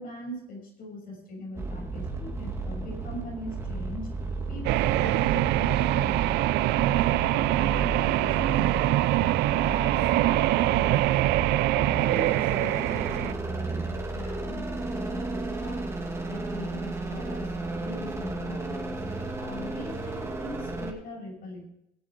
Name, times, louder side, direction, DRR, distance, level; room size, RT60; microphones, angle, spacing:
voice 1, 0.0-4.1 4.5-6.4 6.7-8.7 9.6-11.2 11.7-16.0 16.2-17.5 17.8-19.0 19.4-21.7, left 1 dB, 60° left, 0 dB, 6.2 m, -41 dB
sound 1, 1.6-20.9, right 3 dB, 15° right, 2.5 m, -33 dB
sound 2, 4.6-13.3, right 16 dB, 90° right, 0.5 m, -24 dB
20.5 x 7.6 x 4.6 m, 0.83 s
cardioid pair, 110°, 17 cm